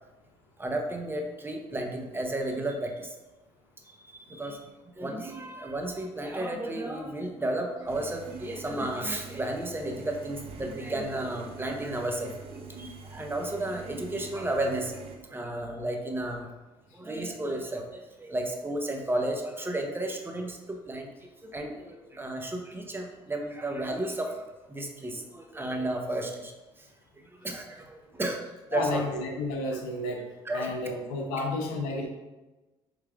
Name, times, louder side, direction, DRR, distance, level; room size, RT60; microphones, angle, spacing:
voice 1, 0.6-3.1 3.9-4.6 5.0-12.3 12.8-16.5 16.9-21.1 21.4-26.5 26.8-26.9 27.2-28.4 28.7-29.0 29.7-29.8 30.4-30.7 31.4-31.5, right 1 dB, 15° right, 2 dB, 0.8 m, -33 dB
sound 1, 7.9-15.2, right 4 dB, 50° right, 0.7 m, -44 dB
voice 2, 28.7-30.2 30.5-32.1, left 2 dB, 80° left, 2 dB, 0.7 m, -31 dB
5.7 x 3.2 x 2.4 m, 1.1 s
hypercardioid pair, 60°, 12 cm